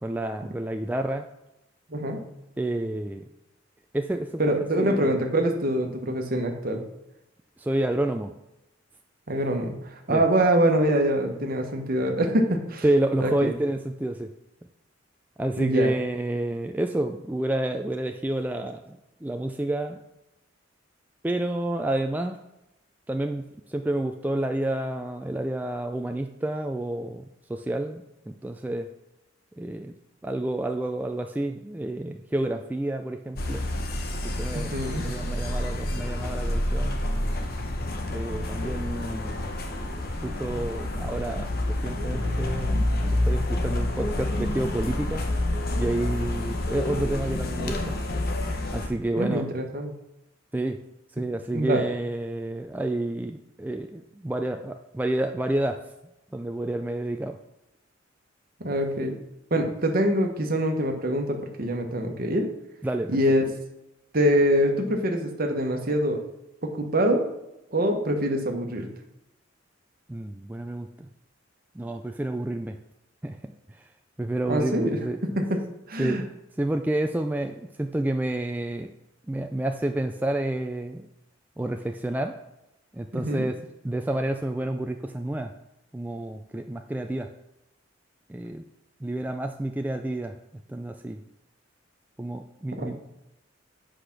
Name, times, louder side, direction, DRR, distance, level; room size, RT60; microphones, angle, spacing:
voice 1, 0.0-1.3 2.6-3.2 3.9-5.1 7.6-8.3 10.1-10.2 12.8-14.3 15.4-20.0 21.2-22.4 23.1-28.9 29.6-29.9 30.2-33.7 34.2-37.0 38.1-39.9 40.2-42.8 43.2-45.2 45.8-47.9 48.7-49.5 50.5-50.8 51.2-55.8 56.3-57.4 62.8-63.2 70.1-71.1 71.8-72.8 73.2-73.4 74.2-75.2 76.0-76.3 76.6-78.9 79.3-81.1 81.6-82.4 82.9-83.6 83.8-85.5 85.9-87.3 88.3-88.6 89.0-90.4 90.7-91.2 92.2-93.0, right 1 dB, 10° right, 5 dB, 0.3 m, -29 dB
voice 2, 1.9-2.2 4.4-6.8 9.3-12.8 13.2-13.5 15.6-15.9 34.5-35.1 49.2-49.9 51.5-51.8 58.6-59.2 59.5-62.5 63.1-63.4 64.1-66.2 66.6-67.3 67.7-68.9 74.5-75.0 75.3-75.6 75.9-76.2 83.1-83.4 92.7-93.0, right 1 dB, 50° right, 4 dB, 1.2 m, -24 dB
sound 1, 33.3-48.9, left 1 dB, 50° left, 1.1 m, -28 dB
8.1 x 5.0 x 6.0 m, 0.90 s
head